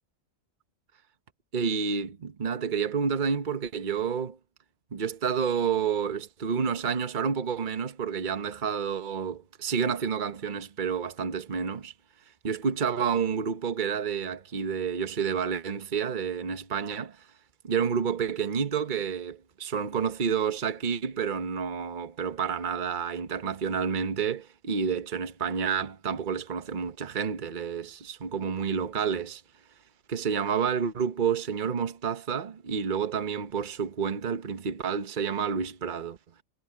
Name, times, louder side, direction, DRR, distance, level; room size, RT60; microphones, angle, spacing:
voice 1, 1.5-4.4 4.9-11.9 12.4-17.2 17.6-29.4 30.1-36.2, right 6 dB, 40° right, 1.2 m, -29 dB
omnidirectional pair, 1.4 m